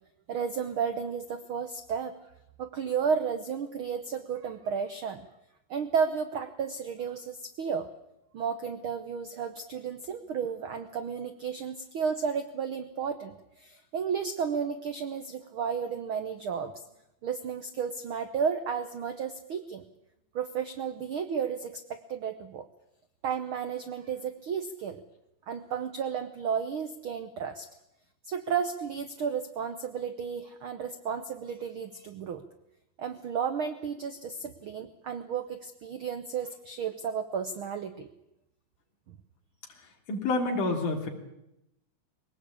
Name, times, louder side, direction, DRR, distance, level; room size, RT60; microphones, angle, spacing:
voice 1, 0.3-2.1 2.6-5.3 5.7-7.9 8.3-16.7 17.2-19.8 20.3-22.7 23.2-25.0 25.5-27.7 28.2-32.4 33.0-38.1 39.1-39.2, right 6 dB, 85° right, 9 dB, 1.1 m, -33 dB
voice 2, 40.1-41.1, left 2 dB, 70° left, 0 dB, 4.7 m, -28 dB
22.5 x 18.0 x 8.5 m, 0.85 s
omnidirectional pair, 3.9 m